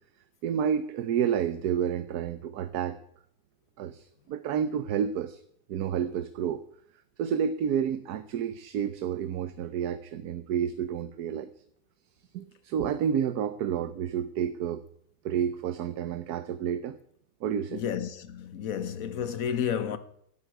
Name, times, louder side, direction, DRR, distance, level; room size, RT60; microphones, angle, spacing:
voice 1, 0.4-3.0 3.8-5.4 5.7-6.6 7.2-11.5 12.3-14.8 15.2-17.0 17.4-17.8, right 8 dB, 80° right, 1.3 m, -30 dB
voice 2, 17.7-20.0, left 8 dB, 65° left, 1.4 m, -31 dB
12.0 x 8.0 x 9.1 m
omnidirectional pair, 1.6 m